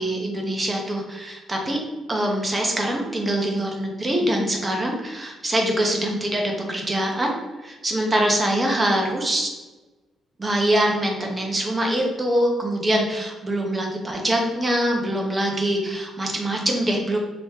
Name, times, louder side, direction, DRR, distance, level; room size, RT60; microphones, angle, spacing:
voice 1, 0.0-1.8 2.1-9.5 10.4-17.2, right 1 dB, 20° right, 1 dB, 0.8 m, -24 dB
3.0 x 2.8 x 3.6 m, 1.2 s
cardioid pair, 90°, 0 cm